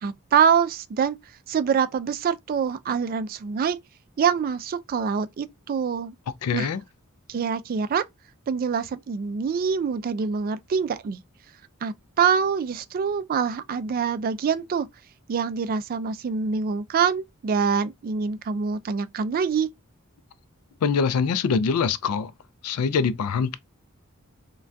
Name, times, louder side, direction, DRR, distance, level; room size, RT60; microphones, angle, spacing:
voice 1, 0.0-1.2 1.5-3.8 4.2-6.1 6.5-6.7 7.3-8.0 8.5-11.2 11.8-14.9 15.3-19.7, right 6 dB, 40° right, 0.3 m, -25 dB
voice 2, 6.4-6.8 20.8-22.3 22.6-23.6, left 5 dB, 85° left, 0.4 m, -24 dB
3.3 x 2.2 x 2.5 m
head